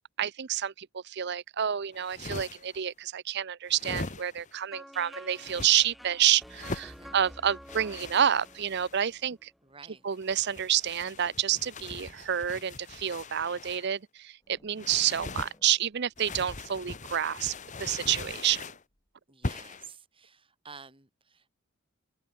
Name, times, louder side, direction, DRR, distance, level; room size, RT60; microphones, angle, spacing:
voice 1, 0.2-9.5 10.0-18.6, right 10 dB, 50° right, 0.5 m, -29 dB
sound 1, 1.9-2.8 3.7-4.6 5.3-5.7 6.5-7.0 7.7-9.1 10.1-13.9 14.8-15.6 16.2-18.8 19.4-19.9, left 3 dB, 35° left, 1.1 m, -41 dB
sound 2, 4.7-9.7, equal, ahead, 3.6 m, -49 dB
voice 2, 6.8-7.2 9.6-10.1 19.3-21.6, right 5 dB, 25° right, 4.3 m, -51 dB
sound 3, 14.4-19.1, equal, 20° left, 3.8 m, -60 dB
head